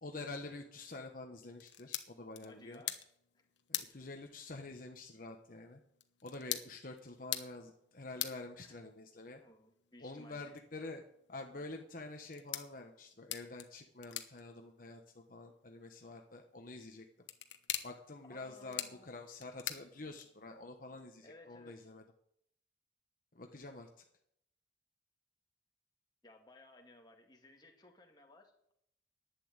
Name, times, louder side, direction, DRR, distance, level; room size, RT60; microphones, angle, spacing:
voice 1, 0.0-2.8 3.7-5.8 6.2-9.4 10.0-11.0 11.3-17.0 17.8-22.0 23.3-23.9, left 2 dB, 50° left, 3 dB, 1.2 m, -47 dB
sound 1, 1.5-20.6, left 12 dB, 80° left, 1.2 m, -47 dB
voice 2, 2.5-3.0 3.3-3.5 8.6-8.8 9.4-10.6 18.2-19.1 21.2-21.9 26.2-28.7, left 2 dB, 25° left, 2 dB, 2.0 m, -58 dB
11.5 x 8.6 x 8.9 m, 0.74 s
head